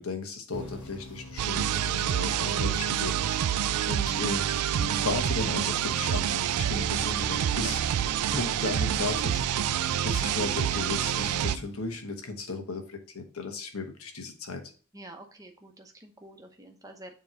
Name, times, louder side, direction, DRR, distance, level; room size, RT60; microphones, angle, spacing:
voice 1, 0.0-4.5 4.8-7.8 8.3-9.4 9.9-14.6, left 3 dB, 70° left, 4 dB, 1.3 m, -35 dB
sound 1, 0.5-12.2, left 1 dB, 50° left, 2.8 m, -45 dB
sound 2, 1.4-11.6, right 10 dB, 85° right, 0.4 m, -27 dB
voice 2, 14.9-17.1, right 1 dB, 15° right, 4 dB, 0.9 m, -48 dB
7.2 x 3.1 x 5.0 m, 0.40 s
head